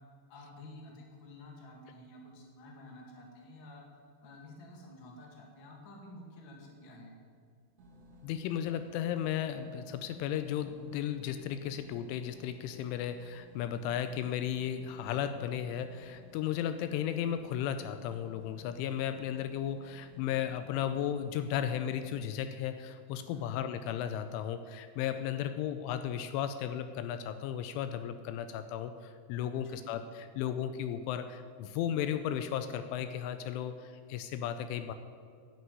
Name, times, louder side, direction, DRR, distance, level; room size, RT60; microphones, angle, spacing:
voice 1, 0.3-3.8 4.2-7.1 23.3-23.5 29.5-29.9, left 2 dB, 35° left, 0 dB, 1.9 m, -51 dB
sound 1, 7.8-22.1, left 3 dB, 60° right, 1.5 m, -57 dB
voice 2, 8.2-34.9, left 9 dB, 85° left, 10 dB, 3.0 m, -35 dB
10.5 x 9.6 x 9.4 m, 2.1 s
omnidirectional pair, 5.7 m